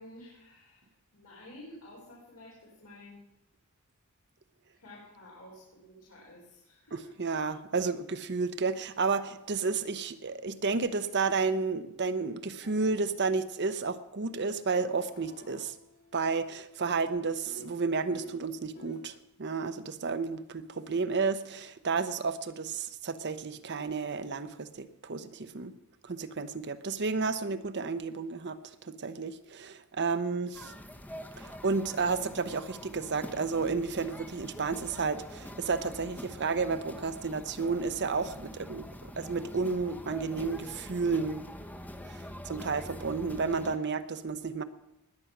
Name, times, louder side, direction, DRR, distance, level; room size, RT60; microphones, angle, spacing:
voice 1, 0.0-3.2 4.7-7.1, left 1 dB, 90° left, -6 dB, 4.6 m, -51 dB
voice 2, 6.9-15.7 16.1-25.7 26.0-30.7 31.4-41.4 42.1-42.2 42.5-44.6, right 4 dB, 50° right, 11 dB, 0.7 m, -32 dB
sound 1, 12.6-13.1 14.5-19.1, right 1 dB, 45° left, 1.6 m, -51 dB
sound 2, 30.5-43.8, equal, 5° left, 0.8 m, -45 dB
20.0 x 7.9 x 5.9 m, 0.85 s
head